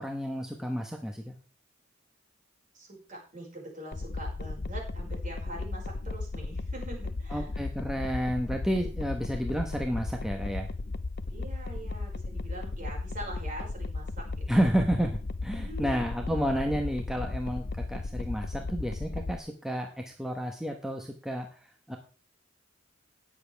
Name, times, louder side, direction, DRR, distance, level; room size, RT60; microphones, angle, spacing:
voice 1, 0.0-1.3 7.3-10.7 14.5-15.1 15.4-21.5 21.9-22.0, equal, 5° right, 2 dB, 1.2 m, -30 dB
voice 2, 2.7-7.5 11.3-14.7 15.5-16.4, right 1 dB, 40° right, -1 dB, 5.5 m, -43 dB
sound 1, 3.9-19.4, left 3 dB, 55° left, 0.8 m, -35 dB
19.0 x 7.3 x 3.5 m, 0.37 s
head